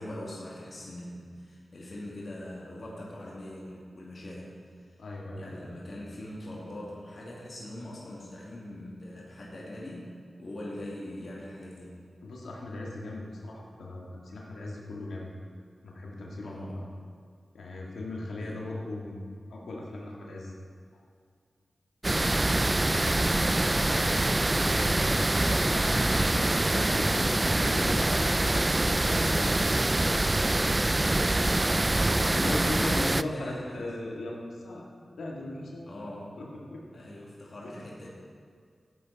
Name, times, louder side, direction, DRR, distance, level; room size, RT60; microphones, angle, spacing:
voice 1, 0.0-4.5 5.4-10.1 10.4-12.0 16.4-16.8 18.4-18.6 22.4-23.5 23.8-25.7 32.1-33.9 35.9-36.3 36.9-38.1, left 1 dB, 55° left, -5 dB, 2.3 m, -42 dB
voice 2, 5.0-5.5 12.2-15.3 15.8-16.8 17.5-20.5 23.9-24.2 25.6-30.9 32.2-34.8 35.2-35.9 36.4-36.8 37.6-37.8, left 2 dB, 85° left, -2 dB, 1.9 m, -38 dB
sound 1, 22.0-33.2, right 2 dB, 25° right, 0.3 m, -25 dB
14.5 x 8.2 x 4.1 m, 2.1 s
cardioid pair, 45°, 0 cm